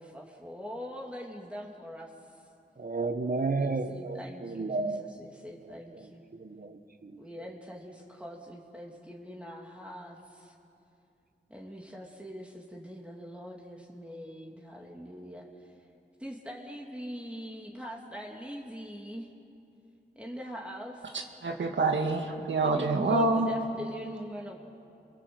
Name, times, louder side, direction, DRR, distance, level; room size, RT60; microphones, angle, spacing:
voice 1, 0.0-2.1 3.6-6.2 7.2-10.5 11.5-15.4 16.2-19.3 20.1-21.0 22.6-24.6, equal, 5° right, -2 dB, 3.1 m, -42 dB
voice 2, 2.8-5.1 5.6-7.5, right 3 dB, 50° right, 8 dB, 1.7 m, -33 dB
voice 3, 21.1-23.5, right 3 dB, 85° right, 2 dB, 2.1 m, -27 dB
28.5 x 21.5 x 8.1 m, 2.7 s
cardioid pair, 50°, 19 cm